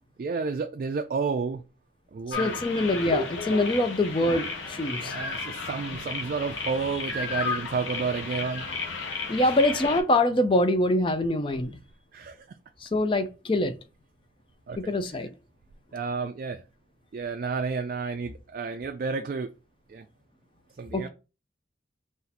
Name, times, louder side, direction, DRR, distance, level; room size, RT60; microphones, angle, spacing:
voice 1, 0.2-1.6 2.1-2.6 4.9-8.8 9.4-9.6 12.1-12.4 14.7-15.2 15.9-16.6 17.1-19.5 19.9-20.0 20.8-21.1, right 5 dB, 50° right, 0.3 m, -31 dB
sound 1, 2.3-10.0, left 4 dB, 85° left, 0.9 m, -33 dB
voice 2, 2.3-5.1 9.3-11.8 12.8-13.7 14.9-15.3 20.9-21.1, left 1 dB, 25° left, 0.4 m, -24 dB
4.1 x 2.5 x 4.0 m
head